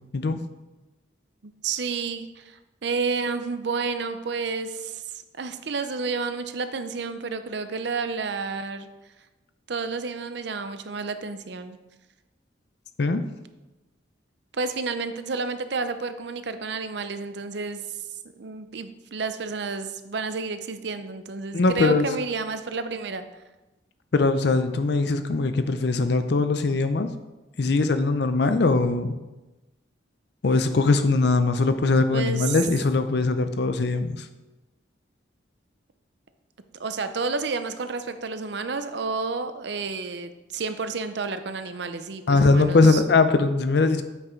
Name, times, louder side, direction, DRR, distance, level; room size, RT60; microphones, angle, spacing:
voice 1, 1.4-8.9 9.7-11.8 14.5-17.8 18.4-23.3 32.1-32.6 36.8-43.0, right 4 dB, 60° right, 10 dB, 0.6 m, -30 dB
voice 2, 21.5-22.1 24.1-27.1 27.6-29.2 30.4-34.3 42.3-44.0, left 3 dB, 60° left, 9 dB, 0.5 m, -21 dB
8.0 x 6.0 x 4.4 m, 1.1 s
head